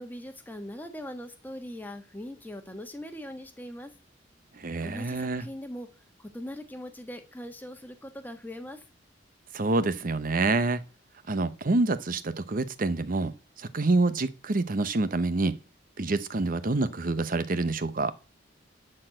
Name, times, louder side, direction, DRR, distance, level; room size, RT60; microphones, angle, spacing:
voice 1, 0.0-3.9 4.8-5.9 6.2-8.8, equal, 10° left, 1.5 m, -41 dB
voice 2, 4.5-5.4 9.5-10.8 11.3-15.5 16.0-18.1, right 2 dB, 50° right, 0.8 m, -27 dB
11.5 x 4.4 x 7.8 m
head